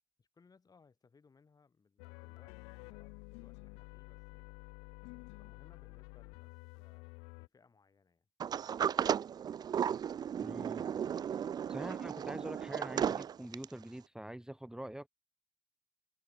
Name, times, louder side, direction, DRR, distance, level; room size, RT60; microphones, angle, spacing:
voice 1, 0.2-4.6 5.1-9.0, left 5 dB, 30° left, 6.9 m, -67 dB
sound 1, 2.0-7.5, left 30 dB, 65° left, 0.5 m, -51 dB
Sliding door, 8.4-13.8, right 8 dB, 35° right, 0.4 m, -35 dB
voice 2, 10.4-10.9 11.7-15.1, right 1 dB, 5° right, 2.8 m, -45 dB
figure-of-eight pair, 50°, 12 cm